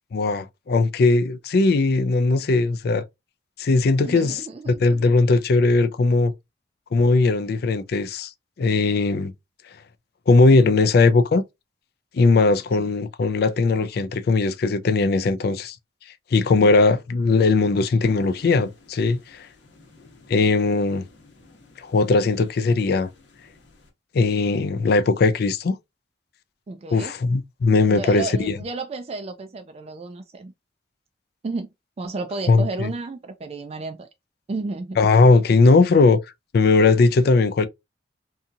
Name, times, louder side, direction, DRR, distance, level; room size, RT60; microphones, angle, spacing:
voice 1, 0.1-3.0 3.6-4.4 4.7-6.3 6.9-8.3 8.6-9.3 10.3-11.4 12.1-15.8 16.3-19.4 20.3-21.0 21.8-23.1 24.1-25.8 26.9-28.5 32.5-32.9 35.0-36.2 36.5-37.7, left 3 dB, 55° left, 0.4 m, -19 dB
voice 2, 4.0-5.1 12.7-12.9 26.7-27.1 27.9-30.5 31.4-31.7 32.0-34.1 34.5-35.0, right 3 dB, 35° right, 0.3 m, -32 dB
sound 1, 18.0-23.9, left 2 dB, 75° left, 0.8 m, -47 dB
2.8 x 2.7 x 2.3 m
head